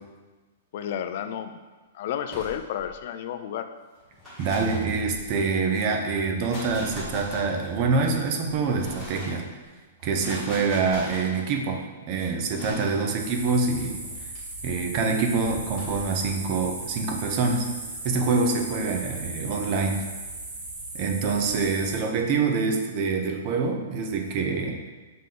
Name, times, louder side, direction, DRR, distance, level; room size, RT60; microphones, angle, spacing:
voice 1, 0.7-1.6 1.9-3.7, left 9 dB, 40° left, 9 dB, 0.3 m, -31 dB
sound 1, 2.3-2.9 4.0-5.5 6.2-7.9 8.5-9.4 10.0-11.4 12.5-13.0 14.0-14.4 15.4-16.0, left 1 dB, 5° left, 2.0 m, -40 dB
voice 2, 4.4-9.5 10.0-14.0 14.6-17.7 18.0-20.0 20.9-24.8, right 4 dB, 30° right, 4 dB, 0.6 m, -25 dB
sound 2, 13.2-22.0, right 2 dB, 50° right, 1.4 m, -37 dB
7.4 x 3.7 x 3.8 m, 1.3 s
hypercardioid pair, 180°, 0 cm